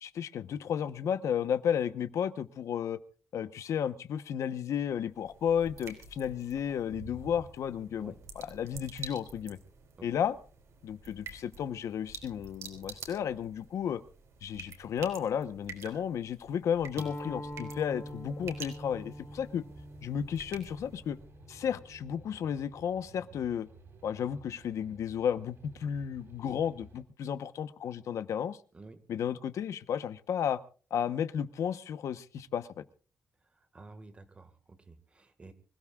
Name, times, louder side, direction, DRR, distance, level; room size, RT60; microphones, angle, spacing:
voice 1, 0.0-3.0 3.3-9.6 10.0-10.3 10.8-14.0 14.4-19.6 20.0-21.2 21.5-23.7 24.0-28.6 29.1-30.6 30.9-32.8, left 8 dB, 75° left, 12 dB, 1.0 m, -33 dB
sound 1, 4.9-21.3, right 5 dB, 65° right, 4.2 m, -49 dB
sound 2, 17.0-22.2, equal, 35° left, 2.6 m, -44 dB
sound 3, 17.2-27.0, right 2 dB, 50° right, 4.7 m, -55 dB
voice 2, 28.7-29.1 33.4-35.5, right 3 dB, 20° right, 10 dB, 1.8 m, -52 dB
25.5 x 17.0 x 2.4 m, 0.38 s
wide cardioid pair, 170°, 5 cm